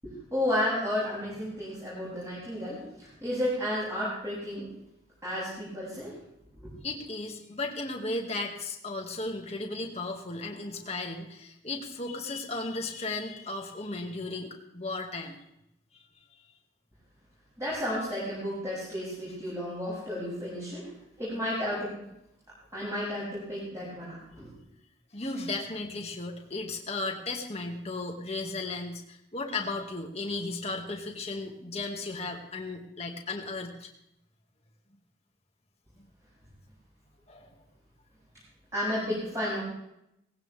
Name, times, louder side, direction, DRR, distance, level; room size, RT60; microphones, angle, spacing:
voice 1, 0.0-4.7 5.2-6.1 6.6-6.7 17.6-20.9 21.2-21.9 22.7-24.5 38.7-39.6, left 1 dB, 15° right, -9 dB, 7.6 m, -32 dB
voice 2, 6.8-15.4 25.1-33.9 37.3-37.5, left 2 dB, 35° left, 2 dB, 2.2 m, -35 dB
18.5 x 17.0 x 3.6 m, 0.81 s
head